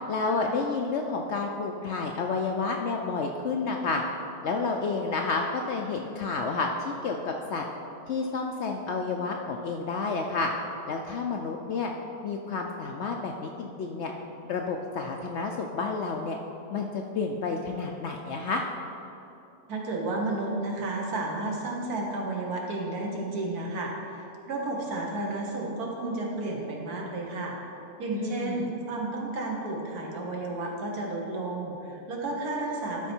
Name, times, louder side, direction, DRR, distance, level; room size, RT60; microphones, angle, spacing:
voice 1, 0.1-4.0 4.4-7.6 8.1-10.5 10.9-11.9 12.2-14.1 14.4-16.4 16.7-18.6 28.2-28.6, left 4 dB, 70° left, 2 dB, 0.7 m, -30 dB
voice 2, 19.7-27.6 28.0-33.1, right 2 dB, 80° right, -1 dB, 1.7 m, -32 dB
12.0 x 4.5 x 4.4 m, 2.9 s
omnidirectional pair, 1.6 m